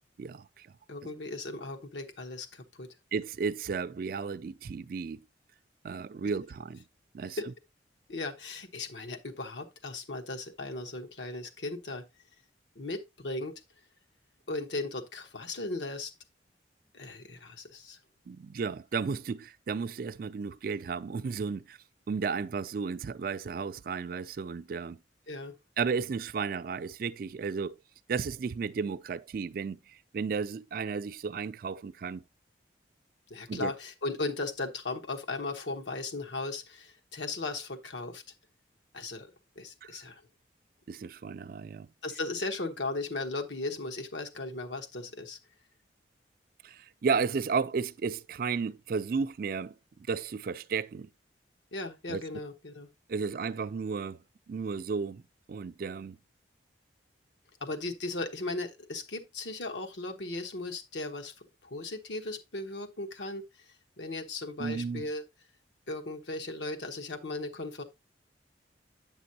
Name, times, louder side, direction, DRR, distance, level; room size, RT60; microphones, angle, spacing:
voice 1, 0.2-0.7 3.1-5.2 5.8-6.8 7.1-7.4 18.3-21.8 22.1-25.0 25.8-27.8 28.1-32.2 33.5-33.7 39.8-40.0 40.9-41.9 46.6-49.7 50.1-51.1 52.1-52.2 53.1-54.2 54.5-55.2 55.5-56.2 64.6-65.0, right 5 dB, 50° right, 0.3 m, -33 dB
voice 2, 0.9-2.9 7.4-7.5 8.1-12.0 12.7-13.5 14.5-16.1 16.9-18.0 25.3-25.5 33.3-38.2 38.9-40.2 42.0-45.4 51.7-52.9 57.6-63.4 64.0-65.3 65.9-67.8, left 2 dB, 80° left, 1.1 m, -37 dB
8.5 x 6.1 x 2.7 m
head